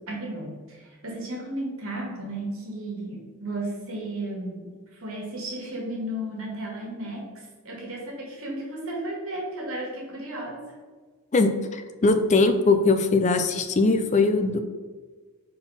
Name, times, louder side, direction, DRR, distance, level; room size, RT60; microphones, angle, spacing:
voice 1, 0.1-10.6, right 1 dB, 65° right, -2 dB, 1.8 m, -34 dB
voice 2, 11.3-14.6, left 3 dB, 30° left, 8 dB, 0.4 m, -21 dB
4.3 x 4.0 x 5.5 m, 1.4 s
head